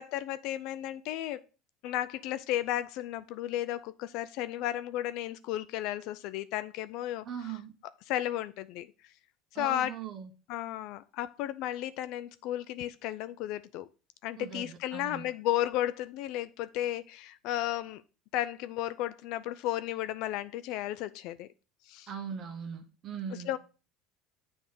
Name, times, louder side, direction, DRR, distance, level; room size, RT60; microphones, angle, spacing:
voice 1, 0.0-1.4 1.8-7.6 8.1-8.9 9.5-9.9 10.5-13.9 14.2-18.0 18.3-21.5 21.9-22.1 23.4-23.6, left 13 dB, 70° left, 0.3 m, -34 dB
voice 2, 7.2-7.7 9.5-10.3 14.4-15.3 22.1-23.5, right 8 dB, 45° right, 0.9 m, -40 dB
7.0 x 3.5 x 6.3 m
supercardioid pair, 90°, 0 cm